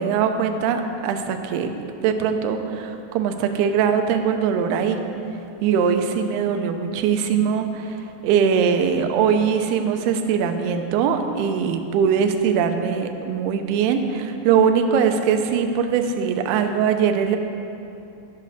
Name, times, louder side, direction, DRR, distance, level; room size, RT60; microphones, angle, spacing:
voice 1, 0.0-5.0 5.6-17.4, right 7 dB, 80° right, 6 dB, 2.5 m, -21 dB
11.5 x 5.4 x 6.4 m, 2.8 s
omnidirectional pair, 4.8 m